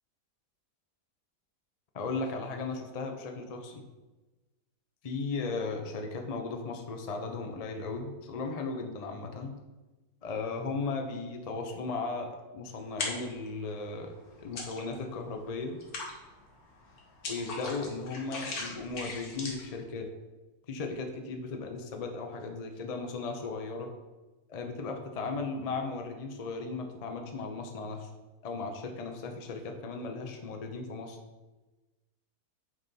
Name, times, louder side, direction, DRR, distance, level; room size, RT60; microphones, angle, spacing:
voice 1, 1.9-3.8 5.0-9.5 10.2-15.8 17.3-20.1 20.7-23.9 24.5-28.1 28.4-31.2, left 3 dB, 35° left, 4 dB, 0.7 m, -36 dB
sound 1, 12.8-13.5 13.9-15.2 15.5-19.8, left 3 dB, 70° left, 1.8 m, -39 dB
8.1 x 4.2 x 5.5 m, 1.2 s
omnidirectional pair, 1.6 m